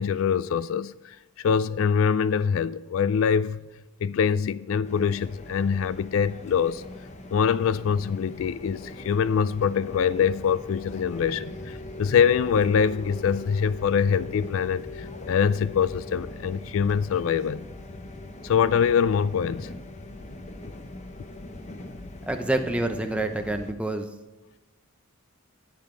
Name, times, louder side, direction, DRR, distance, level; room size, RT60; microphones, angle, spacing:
voice 1, 0.0-3.6 4.0-6.8 7.3-17.6 18.4-19.7, left 7 dB, 70° left, 0.3 m, -24 dB
sound 1, 4.8-23.7, left 1 dB, 30° left, 0.8 m, -40 dB
voice 2, 22.3-24.1, right 2 dB, 5° right, 0.7 m, -27 dB
10.5 x 9.1 x 3.8 m
head